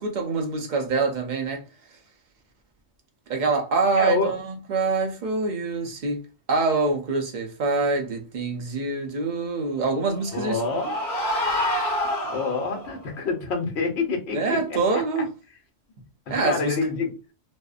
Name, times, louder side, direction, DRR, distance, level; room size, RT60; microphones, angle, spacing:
voice 1, 0.0-1.6 3.3-10.6 14.3-15.3 16.3-16.8, right 3 dB, 50° right, 0.6 m, -25 dB
voice 2, 4.0-4.3 10.3-10.9 12.3-15.2 16.3-17.1, left 4 dB, 65° left, 1.0 m, -27 dB
sound 1, 10.0-13.0, left 1 dB, 35° left, 0.6 m, -27 dB
2.5 x 2.1 x 2.4 m
omnidirectional pair, 1.3 m